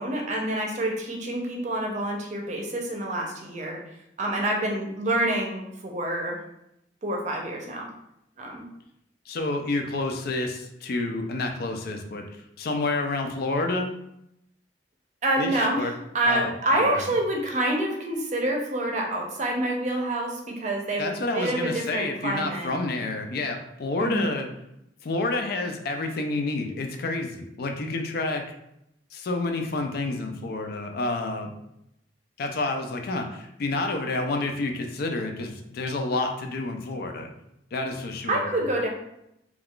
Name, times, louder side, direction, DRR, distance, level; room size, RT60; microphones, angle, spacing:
voice 1, 0.0-3.8 4.2-6.4 7.0-7.9 8.4-8.6 15.2-22.7 24.0-24.3 38.3-38.9, right 1 dB, 40° right, 0 dB, 0.6 m, -27 dB
voice 2, 9.3-12.2 12.6-13.9 15.4-15.9 16.2-17.1 21.0-24.5 25.0-28.4 29.1-31.5 32.4-37.3 37.7-38.6, left 2 dB, 55° left, 4 dB, 0.4 m, -29 dB
2.3 x 2.3 x 3.5 m, 0.80 s
head